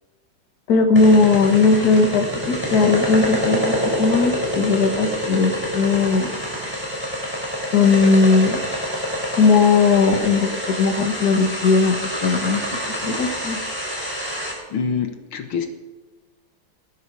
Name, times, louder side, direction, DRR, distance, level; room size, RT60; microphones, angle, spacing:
voice 1, 0.7-6.3 7.7-8.6 9.3-12.6 13.0-13.6, left 4 dB, 50° left, 5 dB, 1.8 m, -18 dB
sound 1, 1.0-14.5, equal, 5° right, 5.6 m, -26 dB
voice 2, 14.7-15.7, left 6 dB, 75° left, 5 dB, 2.1 m, -25 dB
19.0 x 9.5 x 4.8 m, 1.3 s
omnidirectional pair, 2.3 m